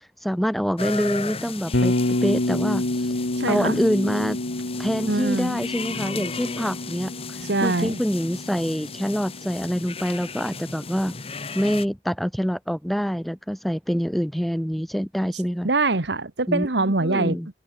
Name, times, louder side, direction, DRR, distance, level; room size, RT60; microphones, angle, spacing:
voice 1, 0.2-1.9 2.2-3.1 3.5-4.4 4.8-7.1 7.6-11.2 11.5-15.7 16.5-16.7 17.0-17.5, equal, ahead, 0.6 m, -25 dB
sound 1, 0.8-11.9, left 4 dB, 35° left, 1.9 m, -36 dB
Bass guitar, 1.7-9.8, left 1 dB, 80° left, 1.7 m, -28 dB
voice 2, 3.4-3.8 5.1-5.6 7.5-8.0 15.6-17.6, right 2 dB, 75° right, 1.6 m, -24 dB
open air
head